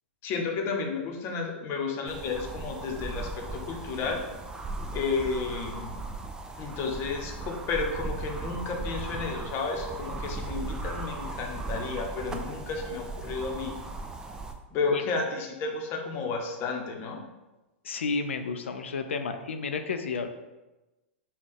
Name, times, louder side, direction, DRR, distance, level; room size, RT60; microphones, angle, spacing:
voice 1, 0.2-3.3 3.7-4.2 4.9-5.9 6.6-13.7 14.7-17.2, left 4 dB, 40° left, 1 dB, 0.8 m, -32 dB
sound 1, 2.1-14.5, right 3 dB, 10° right, 0.4 m, -37 dB
voice 2, 17.8-20.3, left 4 dB, 85° left, 7 dB, 0.4 m, -31 dB
5.3 x 2.3 x 3.4 m, 1.1 s
hypercardioid pair, 115°, 6 cm